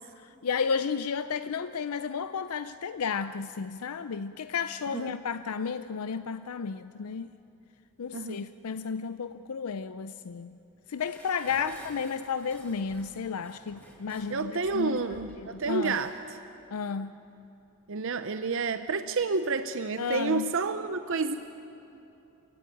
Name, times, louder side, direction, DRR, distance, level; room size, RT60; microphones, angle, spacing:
voice 1, 0.2-7.3 8.0-10.6 10.9-15.0 15.4-16.0 16.7-17.1 20.0-20.5, left 6 dB, 80° left, 12 dB, 0.5 m, -33 dB
voice 2, 8.1-8.5 14.3-16.4 17.9-21.4, right 4 dB, 60° right, 10 dB, 0.7 m, -30 dB
Dishes pots and pans, 11.0-16.3 16.6-16.7, left 1 dB, 10° left, 4.1 m, -52 dB
28.0 x 16.5 x 9.3 m, 2.9 s
head